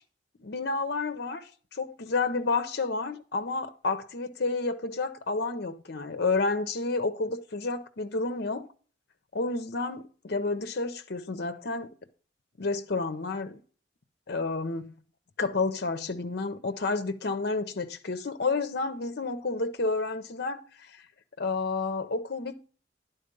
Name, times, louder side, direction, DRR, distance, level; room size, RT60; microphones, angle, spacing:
voice 1, 0.4-1.4 1.7-8.7 9.3-11.9 12.6-13.6 14.3-14.9 15.4-20.6 21.4-22.6, left 3 dB, 55° left, 0.7 m, -30 dB
11.0 x 4.1 x 5.3 m
head